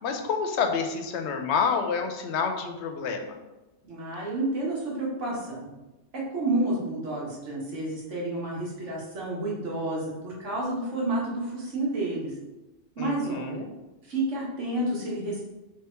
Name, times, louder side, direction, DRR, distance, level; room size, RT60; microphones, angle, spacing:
voice 1, 0.0-3.3 13.0-13.7, left 6 dB, 70° left, 5 dB, 0.9 m, -28 dB
voice 2, 3.9-5.7 6.3-12.3 13.0-13.6 14.1-15.4, right 2 dB, 75° right, -5 dB, 1.7 m, -30 dB
3.5 x 3.3 x 4.4 m, 1.0 s
omnidirectional pair, 1.3 m